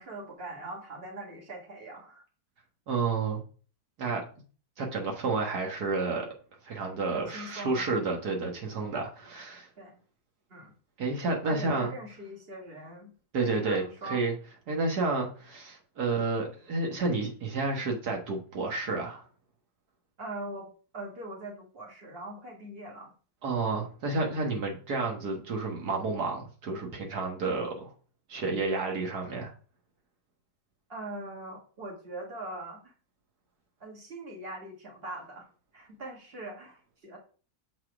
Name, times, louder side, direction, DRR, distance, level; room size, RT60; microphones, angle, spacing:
voice 1, 0.0-2.2 7.1-7.9 9.8-10.0 10.5-10.7 11.4-13.1 13.6-14.2 20.2-20.7 20.9-23.1 30.9-32.9 33.8-35.5 35.7-37.2, right 2 dB, 40° right, -1 dB, 2.2 m, -41 dB
voice 2, 2.9-3.4 4.0-4.3 4.8-6.3 6.6-9.7 11.0-11.9 13.3-14.3 14.7-19.2 23.4-27.9 28.3-29.5, right 3 dB, 85° right, 1 dB, 1.9 m, -30 dB
7.3 x 4.3 x 4.9 m, 0.39 s
omnidirectional pair, 1.6 m